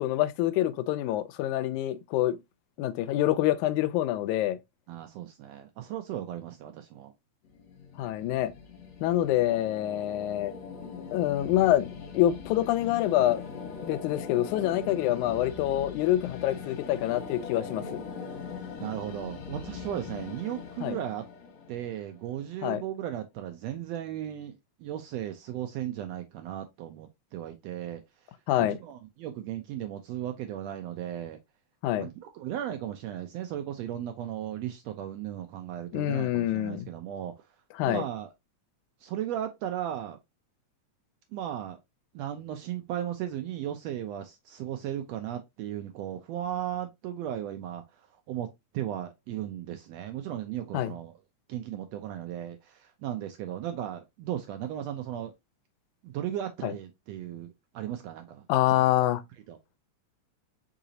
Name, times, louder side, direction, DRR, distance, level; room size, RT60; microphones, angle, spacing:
voice 1, 0.0-2.4 2.8-4.6 8.0-8.5 9.0-10.5 11.1-11.9 12.1-13.4 13.8-18.0 20.8-21.0 22.6-22.8 28.5-28.8 31.8-32.1 35.9-36.9 37.8-38.0 50.7-50.9 56.6-56.7 58.5-59.2, left 13 dB, 85° left, 2.0 m, -26 dB
voice 2, 4.9-7.1 17.8-18.0 18.8-21.3 21.7-24.5 24.8-28.0 28.8-31.4 32.0-37.5 37.9-38.3 39.0-40.2 41.3-41.8 42.1-48.5 48.7-51.1 51.5-55.3 56.0-58.8 59.5-59.6, right 11 dB, 80° right, 1.5 m, -36 dB
sound 1, 7.4-22.5, left 6 dB, 65° left, 2.2 m, -41 dB
5.0 x 3.9 x 2.7 m
omnidirectional pair, 3.4 m